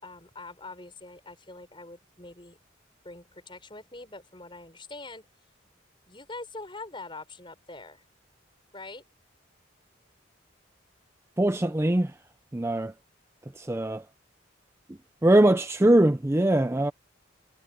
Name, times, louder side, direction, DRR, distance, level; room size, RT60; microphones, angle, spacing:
voice 1, 0.0-2.6 3.0-5.3 6.1-8.0 8.7-9.0, left 2 dB, 25° left, 6.6 m, -43 dB
voice 2, 11.4-12.1 12.5-12.9 13.6-14.0 15.2-16.9, right 1 dB, 15° right, 0.5 m, -22 dB
head